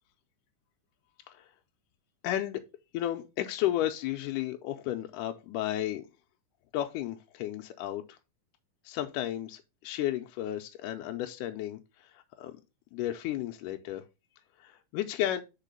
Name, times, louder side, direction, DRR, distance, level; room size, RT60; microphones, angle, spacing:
voice 1, 2.2-2.6 2.9-6.1 6.7-8.2 8.9-12.6 12.9-14.0 14.6-15.4, left 13 dB, 80° left, 2.0 m, -33 dB
4.9 x 4.5 x 5.2 m
omnidirectional pair, 4.0 m